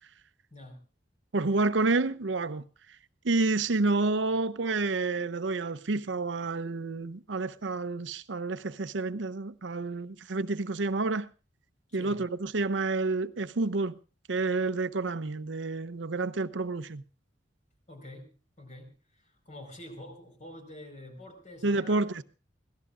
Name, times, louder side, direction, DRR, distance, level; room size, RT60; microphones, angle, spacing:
voice 1, 0.5-0.8 11.9-12.2 17.9-22.2, left 1 dB, 40° left, 4.9 m, -47 dB
voice 2, 1.3-2.6 3.2-11.3 11.9-14.0 14.3-17.0 21.6-22.2, right 3 dB, 85° right, 0.7 m, -29 dB
25.0 x 17.0 x 2.5 m
head